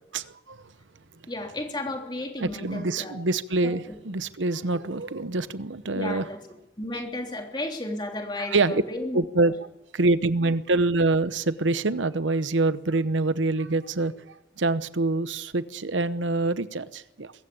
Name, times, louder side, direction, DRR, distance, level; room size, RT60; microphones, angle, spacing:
voice 1, 0.1-0.6 2.4-6.2 8.4-8.8 9.1-9.5 9.9-17.3, right 2 dB, 90° right, 0.9 m, -25 dB
voice 2, 1.3-3.2 3.6-3.9 5.9-6.4 6.8-9.5, left 1 dB, 25° left, 3.4 m, -33 dB
22.5 x 15.0 x 8.7 m
head